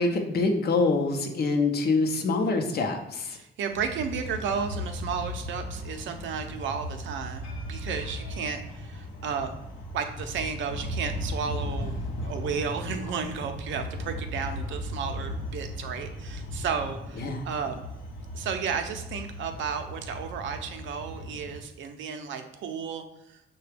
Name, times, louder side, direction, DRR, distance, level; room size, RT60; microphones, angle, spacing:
voice 1, 0.0-3.4 17.2-17.4, left 3 dB, 55° left, 4 dB, 0.6 m, -25 dB
voice 2, 3.3-9.5 9.9-12.0 12.2-17.8 18.3-23.4, right 6 dB, 70° right, 6 dB, 0.5 m, -33 dB
sound 1, 3.7-21.6, left 1 dB, 85° left, 0.8 m, -37 dB
5.7 x 2.2 x 3.3 m, 0.86 s
cardioid pair, 90°, 20 cm